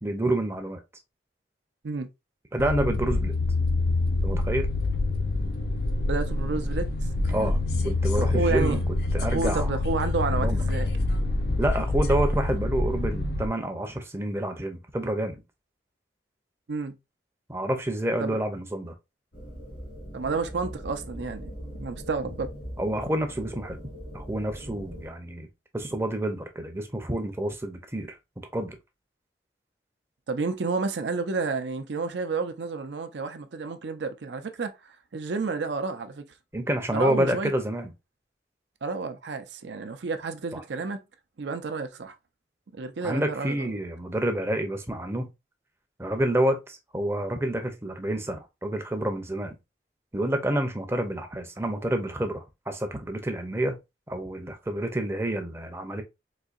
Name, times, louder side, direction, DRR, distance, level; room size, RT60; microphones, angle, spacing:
voice 1, 0.0-0.8 2.5-3.3 4.2-4.7 7.3-7.6 7.8-8.8 9.1-9.7 10.3-10.6 11.6-15.4 17.5-18.9 22.8-23.8 24.1-25.5 25.7-28.2 28.5-28.8 36.5-37.9 40.5-40.6 43.0-45.3 46.0-49.6 50.1-53.8 54.1-56.0, right 1 dB, 15° right, 0.5 m, -28 dB
sound 1, 2.6-13.5, left 2 dB, 60° left, 0.5 m, -26 dB
voice 2, 6.1-7.9 8.2-8.8 9.3-10.9 16.7-17.0 18.2-18.4 20.1-22.5 30.3-36.2 36.9-37.5 38.8-41.0 41.4-42.1 42.7-43.7, right 4 dB, 80° right, 0.5 m, -31 dB
sound 2, 19.3-25.1, equal, 80° left, 1.6 m, -41 dB
4.0 x 2.7 x 2.4 m
head